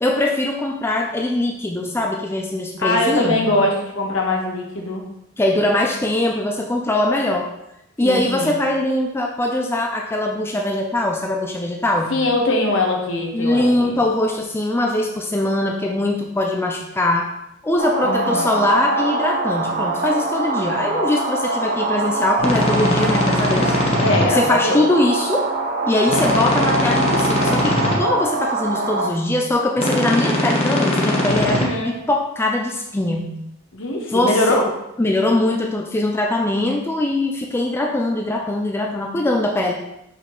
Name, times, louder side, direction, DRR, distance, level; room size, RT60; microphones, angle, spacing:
voice 1, 0.0-3.5 5.4-7.5 8.0-12.2 13.3-17.3 17.6-23.8 24.3-25.5 25.9-31.6 31.8-33.4 34.1-34.7 35.0-39.7, left 1 dB, 10° left, 1 dB, 0.4 m, -21 dB
voice 2, 2.8-5.0 8.0-8.6 12.1-14.0 18.0-18.5 24.0-24.8 31.4-32.0 33.7-34.6, left 2 dB, 65° left, 0 dB, 1.2 m, -22 dB
sound 1, 17.8-29.1, right 2 dB, 40° right, 0.8 m, -23 dB
sound 2, 22.4-24.2 26.1-27.9 29.8-31.6, left 1 dB, 30° left, 1.0 m, -20 dB
5.7 x 5.7 x 3.1 m, 0.86 s
head